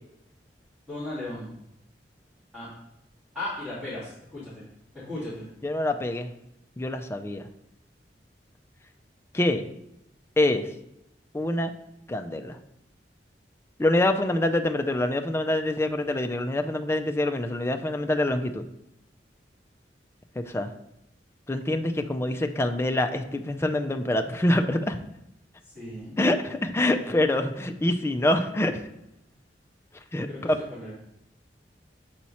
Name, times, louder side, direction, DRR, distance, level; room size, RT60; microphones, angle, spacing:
voice 1, 0.9-1.5 2.5-2.7 3.3-4.6 4.9-5.5 25.6-26.1 30.3-30.9, left 1 dB, 5° right, -13 dB, 2.6 m, -36 dB
voice 2, 5.6-6.3 6.8-7.5 9.3-9.7 10.4-10.7 11.3-11.7 12.1-12.6 13.8-18.6 20.4-20.7 21.5-25.0 26.2-28.8 30.1-30.6, left 1 dB, 15° left, 6 dB, 0.4 m, -25 dB
7.2 x 4.4 x 4.2 m, 0.82 s
head